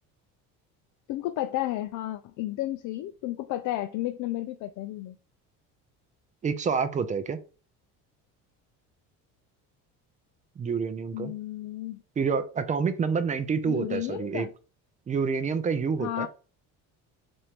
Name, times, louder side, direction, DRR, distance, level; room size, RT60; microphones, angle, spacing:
voice 1, 1.1-5.1 11.1-12.0 13.6-14.5 16.0-16.3, left 14 dB, 60° left, 0.4 m, -32 dB
voice 2, 6.4-7.4 10.6-11.3 12.2-14.5 15.1-16.3, right 5 dB, 25° right, 0.4 m, -28 dB
4.3 x 2.6 x 3.4 m
cardioid pair, 125°, 34 cm